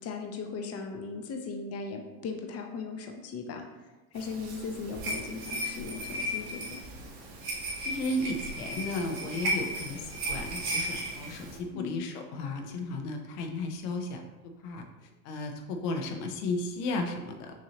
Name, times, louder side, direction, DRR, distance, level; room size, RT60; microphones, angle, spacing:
voice 1, 0.0-3.6 4.1-6.8 11.7-12.1, left 5 dB, 35° left, 3 dB, 0.7 m, -38 dB
sound 1, 4.2-11.6, equal, 55° right, 1.4 m, -35 dB
voice 2, 7.8-14.8 15.2-17.6, left 2 dB, 85° left, 4 dB, 0.8 m, -34 dB
6.1 x 2.7 x 2.8 m, 1.1 s
supercardioid pair, 100°, 45 cm